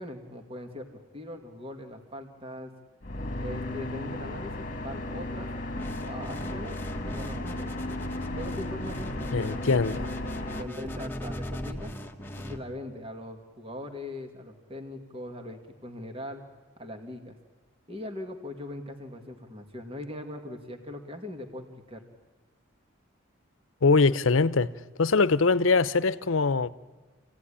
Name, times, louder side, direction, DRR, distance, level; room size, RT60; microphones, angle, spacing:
voice 1, 0.0-2.7 3.4-5.5 6.0-8.0 8.3-10.0 10.6-11.9 12.4-16.4 16.8-17.4 17.9-22.0, left 1 dB, 30° right, 2.0 m, -40 dB
sound 1, 3.0-10.6, left 1 dB, 40° left, 1.7 m, -35 dB
sound 2, 5.7-12.6, equal, 10° left, 1.5 m, -38 dB
voice 2, 9.3-10.1 23.8-24.7 25.0-26.7, left 4 dB, 80° left, 0.7 m, -22 dB
27.5 x 17.0 x 10.0 m
head